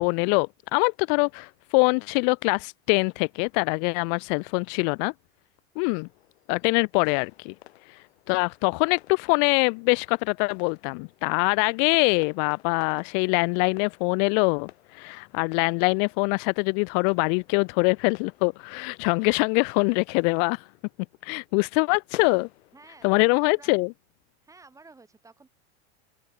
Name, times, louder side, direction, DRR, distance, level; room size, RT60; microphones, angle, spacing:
voice 1, 0.0-5.1 5.8-6.1 6.5-7.5 7.9-8.0 8.3-20.6 21.2-22.5 23.0-23.9, left 40 dB or more, 50° left, 0.8 m, -24 dB
sound 1, 5.9-23.4, left 17 dB, 75° left, 5.2 m, -52 dB
voice 2, 22.7-23.7 24.4-25.5, right 3 dB, 10° right, 7.2 m, -52 dB
open air
supercardioid pair, 140°, 32 cm